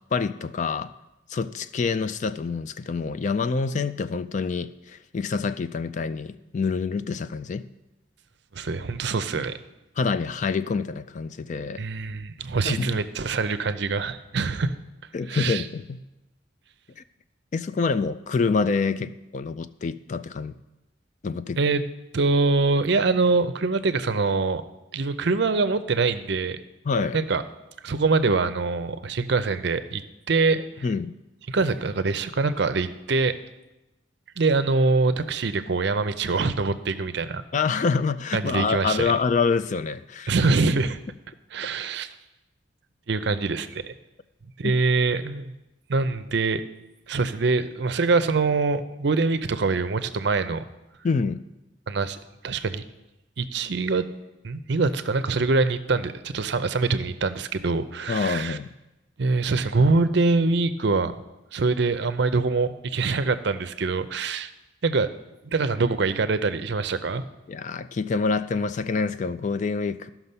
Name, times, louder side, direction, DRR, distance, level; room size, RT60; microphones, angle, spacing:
voice 1, 0.1-0.9 1.3-7.6 10.0-11.8 12.6-13.0 15.1-16.0 17.0-17.1 17.5-20.6 21.2-21.6 26.8-27.2 30.8-31.1 37.5-40.3 44.6-44.8 51.0-51.4 58.1-58.7 67.5-70.1, left 4 dB, 40° left, 13 dB, 0.3 m, -26 dB
voice 2, 8.5-9.6 11.8-14.8 15.3-15.6 21.6-21.8 22.1-24.6 24.9-26.6 27.1-27.4 27.8-30.0 30.3-30.6 31.5-33.3 34.4-37.4 38.3-39.1 40.3-41.0 41.5-42.1 43.1-43.9 44.6-45.5 45.9-46.6 47.1-50.6 51.9-52.2 52.4-52.8 53.4-54.0 54.4-58.6 59.2-61.2 61.5-64.5 64.8-65.1 65.5-67.2, right 3 dB, 60° right, 12 dB, 0.5 m, -24 dB
13.5 x 6.0 x 5.5 m, 0.98 s
head